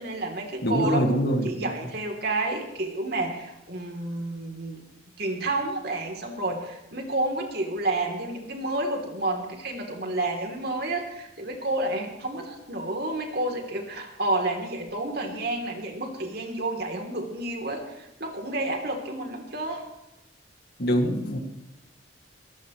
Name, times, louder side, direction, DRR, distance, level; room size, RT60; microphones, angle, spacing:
voice 1, 0.0-4.8 5.2-19.8, right 2 dB, 55° right, 2 dB, 3.3 m, -30 dB
voice 2, 0.6-1.7 20.8-21.4, equal, 50° left, 3 dB, 2.3 m, -24 dB
22.5 x 17.0 x 3.2 m, 0.94 s
head